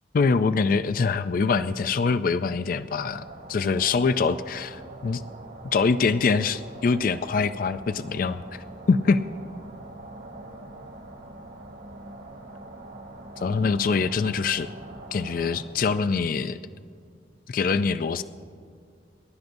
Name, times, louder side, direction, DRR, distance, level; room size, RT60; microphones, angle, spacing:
voice 1, 0.1-3.2 3.5-5.2 5.7-9.2 13.4-14.7 15.1-16.6 17.5-18.2, left 4 dB, 50° left, 12 dB, 0.4 m, -24 dB
sound 1, 3.0-15.6, right 2 dB, 80° right, 2.6 m, -43 dB
28.0 x 12.0 x 2.6 m, 2.3 s
head